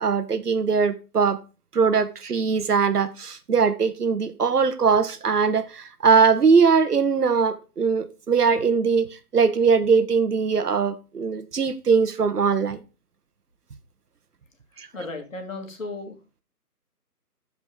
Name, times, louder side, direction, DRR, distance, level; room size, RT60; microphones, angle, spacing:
voice 1, 0.0-1.4 1.7-12.8 14.8-14.9, right 5 dB, 75° right, 1.1 m, -21 dB
voice 2, 14.9-16.2, left 2 dB, 55° left, 2.5 m, -34 dB
13.0 x 5.1 x 3.6 m
hypercardioid pair, 175°, 47 cm